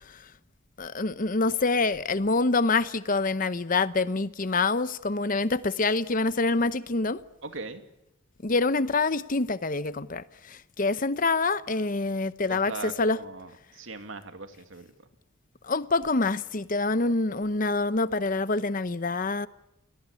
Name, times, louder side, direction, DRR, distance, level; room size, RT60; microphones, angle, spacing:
voice 1, 0.8-7.2 8.4-13.2 15.6-19.5, left 3 dB, 40° left, 0.9 m, -26 dB
voice 2, 7.4-7.8 12.5-14.9, right 3 dB, 70° right, 2.5 m, -39 dB
29.0 x 19.0 x 8.3 m
head